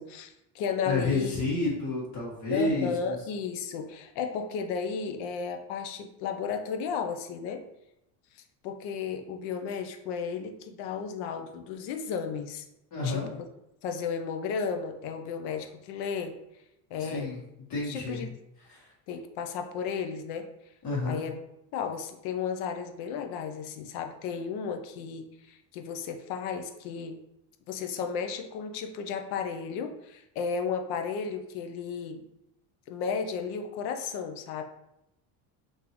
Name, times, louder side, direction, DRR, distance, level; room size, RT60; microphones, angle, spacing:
voice 1, 0.0-1.4 2.5-7.6 8.3-12.6 13.0-13.4 13.8-16.3 16.9-17.3 17.9-18.3 19.1-20.5 21.1-21.4 21.7-27.2 27.7-32.2 32.9-34.6, left 6 dB, 70° left, 6 dB, 0.6 m, -34 dB
voice 2, 0.8-3.2 12.9-13.3 17.0-17.4 17.7-18.3 18.7-18.9 20.8-21.2, left 2 dB, 45° left, -5 dB, 1.4 m, -30 dB
3.8 x 2.7 x 2.9 m, 0.84 s
cardioid pair, 160°, 41 cm